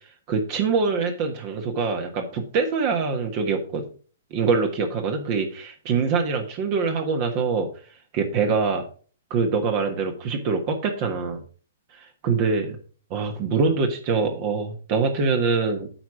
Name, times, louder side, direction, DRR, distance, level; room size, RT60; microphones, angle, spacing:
voice 1, 0.3-3.9 4.3-7.7 8.1-8.8 9.3-11.4 11.9-12.8 13.1-15.9, right 4 dB, 40° right, 4 dB, 1.4 m, -24 dB
8.8 x 4.9 x 6.0 m, 0.41 s
figure-of-eight pair, 115°, 0 cm